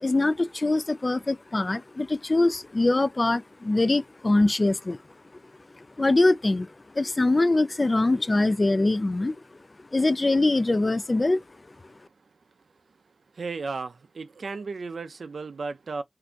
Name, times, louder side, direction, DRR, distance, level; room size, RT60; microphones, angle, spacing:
voice 1, 0.0-5.0 5.8-6.7 6.9-9.4 9.9-11.4, left 2 dB, 45° left, 0.4 m, -23 dB
voice 2, 13.4-16.0, right 4 dB, 90° right, 0.4 m, -34 dB
3.4 x 2.6 x 2.4 m
cardioid pair, 40°, 0 cm